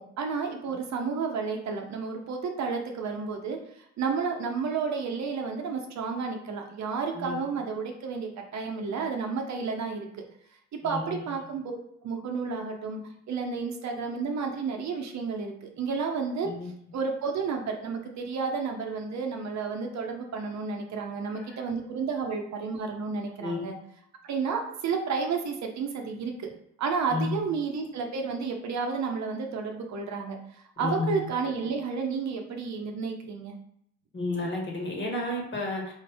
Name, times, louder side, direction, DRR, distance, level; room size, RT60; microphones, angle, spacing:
voice 1, 0.2-3.6 4.0-10.2 10.8-11.8 12.0-13.0 13.3-16.5 16.9-23.8 24.2-26.5 26.8-33.5, right 5 dB, 65° right, 2 dB, 0.8 m, -31 dB
voice 2, 10.8-11.4 16.4-16.7 21.4-21.5 23.4-23.7 27.1-27.4 30.8-31.2 34.1-35.9, left 2 dB, 40° left, 0 dB, 1.4 m, -31 dB
4.8 x 2.6 x 3.4 m, 0.72 s
cardioid pair, 90°, 30 cm